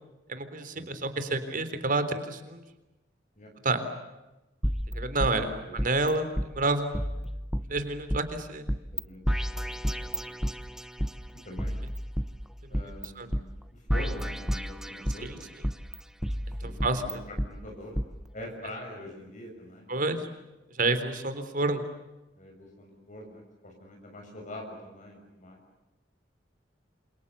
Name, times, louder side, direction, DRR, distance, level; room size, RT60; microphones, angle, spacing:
voice 1, 0.3-2.6 3.6-3.8 4.9-7.0 7.7-8.7 13.2-13.3 15.2-15.4 16.6-17.2 19.9-20.2 20.8-21.8, right 2 dB, 50° right, 10 dB, 3.8 m, -29 dB
sound 1, 4.6-6.1 6.4-6.5 6.9-8.2 8.7-9.0 9.3-11.1 11.6-13.1 13.3-13.4 13.9-15.3 15.6-17.5 18.0-18.1, equal, 5° right, 1.1 m, -31 dB
voice 2, 5.4-5.9 8.9-9.4 9.6-10.3 11.4-11.7 12.7-13.4 13.7-15.5 16.6-20.0 22.4-25.6, left 1 dB, 45° left, 1 dB, 6.8 m, -44 dB
28.5 x 28.0 x 7.0 m, 1.0 s
head